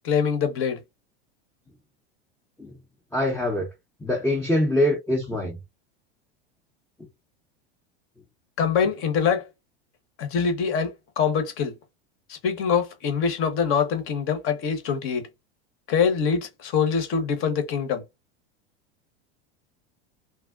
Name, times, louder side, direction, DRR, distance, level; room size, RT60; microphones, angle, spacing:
voice 1, 0.0-0.8 8.6-9.4 10.2-10.9 11.2-11.7 12.3-15.2 15.9-18.0, left 6 dB, 40° left, 1.0 m, -24 dB
voice 2, 3.1-3.7 4.0-5.6, left 1 dB, 5° left, 0.6 m, -24 dB
3.5 x 2.0 x 2.4 m
supercardioid pair, 115°, 32 cm